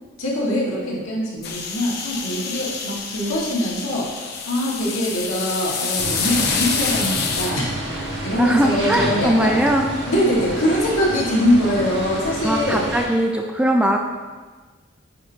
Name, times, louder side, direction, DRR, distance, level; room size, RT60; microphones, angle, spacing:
voice 1, 0.2-7.7 8.2-9.5 10.1-12.8, equal, 85° left, -5 dB, 1.7 m, -22 dB
sound 1, 1.4-7.5, left 5 dB, 50° left, 0.6 m, -27 dB
sound 2, 6.0-13.0, right 1 dB, 55° right, 1.2 m, -29 dB
voice 2, 8.4-9.9 12.4-14.0, equal, 5° right, 2 dB, 0.3 m, -20 dB
9.0 x 4.2 x 2.8 m, 1.4 s
head